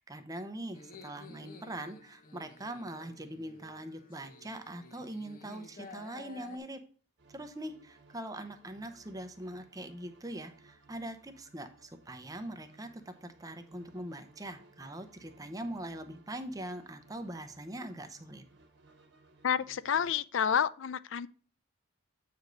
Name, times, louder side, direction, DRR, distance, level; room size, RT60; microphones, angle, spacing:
voice 1, 0.0-6.8 7.3-18.4, right 1 dB, 15° right, 0.8 m, -42 dB
sound 1, 0.7-6.6, left 3 dB, 40° left, 0.9 m, -52 dB
sound 2, 7.2-20.1, right 3 dB, 55° right, 1.4 m, -62 dB
voice 2, 19.4-21.3, left 8 dB, 65° left, 0.4 m, -29 dB
8.1 x 5.0 x 3.9 m
head